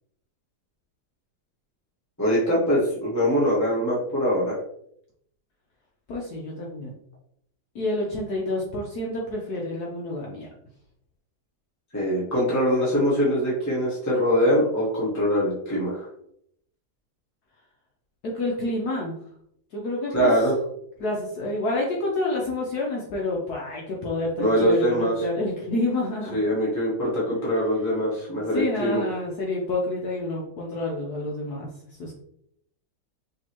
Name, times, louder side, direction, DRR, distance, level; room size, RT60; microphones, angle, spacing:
voice 1, 2.2-4.5 11.9-16.1 20.1-20.5 24.4-25.2 26.3-29.0, equal, 15° left, -7 dB, 0.7 m, -23 dB
voice 2, 6.1-6.9 7.7-10.5 18.2-19.2 19.7-20.3 21.0-26.4 28.5-31.7 32.0-32.2, left 2 dB, 60° left, -2 dB, 1.1 m, -28 dB
5.2 x 2.9 x 2.9 m, 0.71 s
omnidirectional pair, 2.2 m